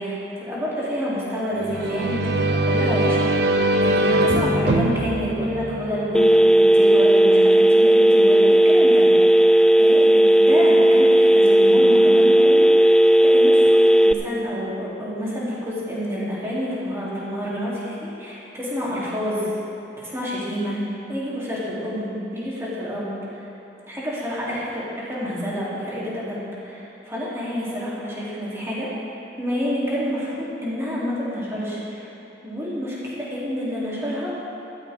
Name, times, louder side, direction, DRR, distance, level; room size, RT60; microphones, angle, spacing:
voice 1, 0.0-9.4 9.7-19.5 20.0-20.8 21.1-23.4 23.9-28.9 29.4-32.0 32.4-34.3, equal, 15° right, -8 dB, 3.3 m, -28 dB
sound 1, 1.6-6.4, right 1 dB, 70° right, 0.8 m, -22 dB
Telephone, 6.1-14.1, right 1 dB, 5° left, 0.3 m, -14 dB
14.5 x 13.5 x 3.7 m, 3.0 s
head